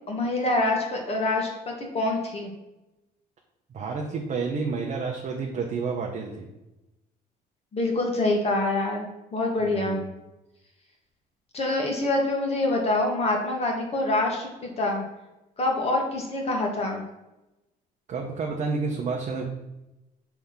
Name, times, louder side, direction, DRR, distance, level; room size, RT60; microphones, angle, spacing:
voice 1, 0.1-2.5 7.7-10.0 11.5-15.0 15.6-17.0, left 2 dB, 35° left, 0 dB, 1.5 m, -26 dB
voice 2, 3.7-6.5 9.6-10.1 18.1-19.5, right 4 dB, 45° right, 0 dB, 0.9 m, -30 dB
6.0 x 3.4 x 5.6 m, 0.97 s
cardioid pair, 110°, 17 cm